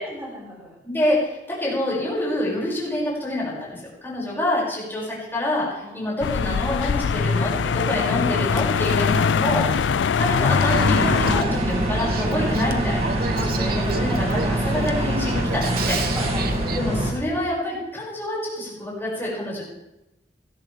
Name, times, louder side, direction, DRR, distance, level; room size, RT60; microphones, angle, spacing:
voice 1, 0.0-0.8 5.8-6.1 16.1-16.7, left 1 dB, 15° right, -4 dB, 5.1 m, -37 dB
voice 2, 0.8-13.2 13.4-16.0 16.7-19.6, left 1 dB, 15° left, -6 dB, 6.3 m, -27 dB
sound 1, 6.2-11.4, left 6 dB, 90° left, 0.4 m, -22 dB
Male speech man speaking / Female speech woman speaking / Conversation, 9.1-16.8, right 4 dB, 55° right, 1.1 m, -34 dB
sound 2, 10.7-17.1, right 1 dB, 35° right, 2.3 m, -24 dB
17.5 x 12.5 x 3.5 m, 0.91 s
head